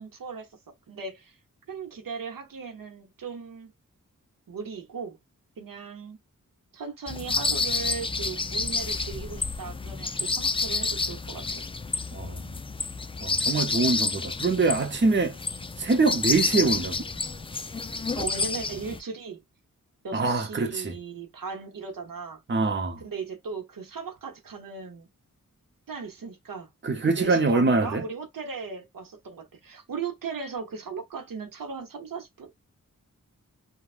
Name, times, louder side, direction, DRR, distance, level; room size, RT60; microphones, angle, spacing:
voice 1, 0.0-1.4 1.7-3.7 4.5-5.2 5.6-6.2 6.7-11.6 18.1-19.4 20.0-22.4 23.0-25.1 25.9-26.7 27.0-32.5, right 5 dB, 85° right, 0.9 m, -37 dB
sound 1, 7.1-19.0, left 4 dB, 20° left, 0.3 m, -29 dB
voice 2, 12.1-12.6 13.2-15.4 15.8-17.0 20.1-21.0 22.5-23.0 26.8-28.0, right 3 dB, 35° right, 0.8 m, -24 dB
3.2 x 2.3 x 2.4 m
wide cardioid pair, 90°, 33 cm